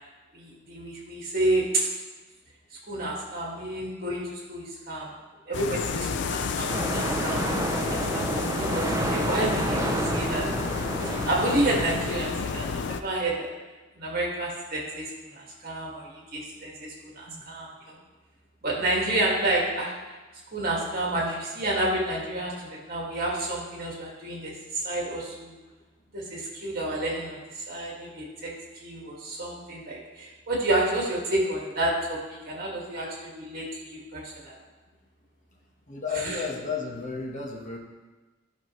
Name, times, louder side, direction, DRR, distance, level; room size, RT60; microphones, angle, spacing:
voice 1, 0.3-1.8 2.9-5.1 5.5-7.4 7.8-9.8 10.1-10.4 11.0-13.5 14.0-18.0 18.6-19.9 20.5-25.6 26.1-28.5 28.8-34.5 36.1-36.4, right 1 dB, 50° right, -3 dB, 2.0 m, -30 dB
sound 1, 5.5-13.0, left 5 dB, 60° left, 0.4 m, -31 dB
sound 2, 6.7-12.5, right 1 dB, 15° right, 0.5 m, -30 dB
voice 2, 35.9-37.8, left 5 dB, 40° left, -1 dB, 1.2 m, -33 dB
11.5 x 5.9 x 3.1 m, 1.2 s
head